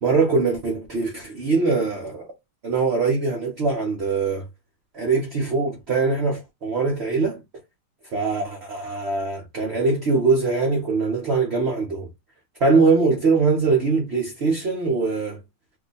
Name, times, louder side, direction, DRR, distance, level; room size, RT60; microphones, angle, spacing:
voice 1, 0.0-2.3 2.6-4.5 4.9-7.4 8.1-12.1 12.6-15.4, right 4 dB, 50° right, 0.9 m, -22 dB
3.0 x 2.1 x 3.9 m
omnidirectional pair, 1.9 m